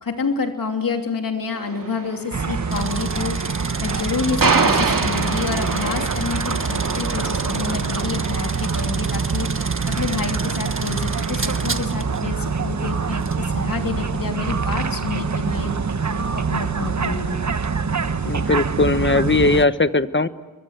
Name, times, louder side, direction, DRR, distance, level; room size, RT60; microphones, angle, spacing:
voice 1, 0.0-3.4 3.8-9.5 9.9-15.7 16.3-17.4, left 5 dB, 90° left, 4 dB, 2.9 m, -28 dB
sound 1, 1.5-9.0, right 4 dB, 80° right, 2.5 m, -26 dB
sound 2, 2.3-19.7, right 5 dB, 60° right, 1.3 m, -25 dB
sound 3, 2.7-12.2 13.2-13.4, right 3 dB, 40° right, 1.6 m, -32 dB
voice 2, 18.2-20.3, left 3 dB, 35° left, 12 dB, 1.2 m, -19 dB
29.0 x 23.5 x 8.1 m, 1.1 s
wide cardioid pair, 55°, 33 cm